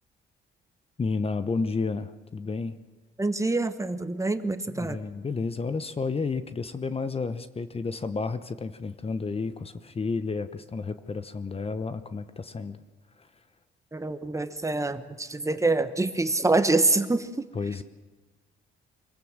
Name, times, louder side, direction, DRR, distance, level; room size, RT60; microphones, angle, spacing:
voice 1, 1.0-2.8 4.7-12.8 17.5-17.8, left 4 dB, 30° left, 11 dB, 1.0 m, -31 dB
voice 2, 3.2-5.0 13.9-17.5, right 2 dB, 15° right, 10 dB, 1.2 m, -26 dB
25.0 x 17.0 x 7.4 m, 1.2 s
cardioid pair, 90°, 20 cm